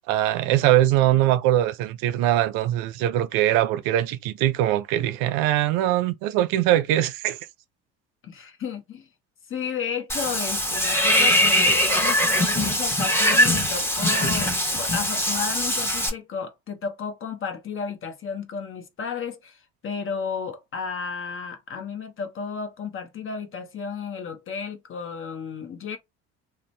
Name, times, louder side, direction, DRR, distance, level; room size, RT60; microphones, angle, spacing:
voice 1, 0.1-7.4, right 13 dB, 75° right, 0.5 m, -22 dB
voice 2, 8.2-9.1 9.5-19.6 19.8-26.0, left 6 dB, 35° left, 0.8 m, -33 dB
Water / Bathtub (filling or washing), 10.1-16.1, left 1 dB, 5° left, 0.9 m, -22 dB
2.5 x 2.1 x 3.2 m
supercardioid pair, 80°, 35 cm